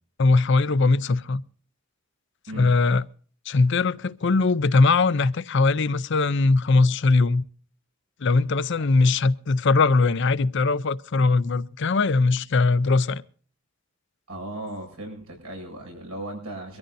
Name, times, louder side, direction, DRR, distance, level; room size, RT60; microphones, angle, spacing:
voice 1, 0.2-1.4 2.5-3.0 3.5-7.4 8.2-13.2, left 3 dB, 55° left, 0.5 m, -20 dB
voice 2, 14.3-16.8, right 1 dB, 90° right, 7.5 m, -36 dB
23.5 x 14.0 x 2.6 m
head